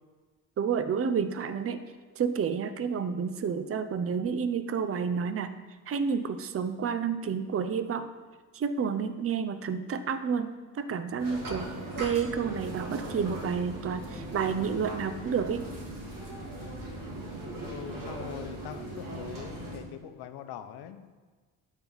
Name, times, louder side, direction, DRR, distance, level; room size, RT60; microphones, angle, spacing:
voice 1, 0.6-1.8 2.1-5.5 5.9-8.1 8.5-11.7 12.0-15.7, right 6 dB, 35° right, 10 dB, 0.7 m, -30 dB
sound 1, 11.2-19.8, right 1 dB, 55° right, 2.5 m, -39 dB
voice 2, 17.6-21.2, left 9 dB, 75° left, 10 dB, 0.8 m, -43 dB
11.5 x 4.5 x 4.0 m, 1.4 s
supercardioid pair, 60°, 39 cm